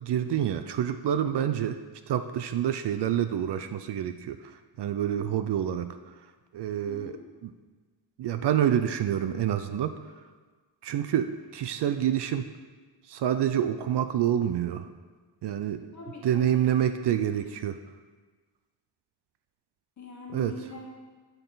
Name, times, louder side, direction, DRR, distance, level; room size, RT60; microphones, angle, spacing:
voice 1, 0.0-1.8 2.1-5.9 6.5-7.1 7.4-7.5 8.2-10.0 10.8-12.5 13.1-14.9 15.4-15.9 16.2-17.8 20.3-20.5, right 10 dB, 65° right, 10 dB, 0.6 m, -27 dB
voice 2, 6.9-7.2 15.9-16.8 20.0-21.0, left 2 dB, 40° left, -2 dB, 1.1 m, -43 dB
13.0 x 7.0 x 3.9 m, 1.4 s
wide cardioid pair, 160°, 44 cm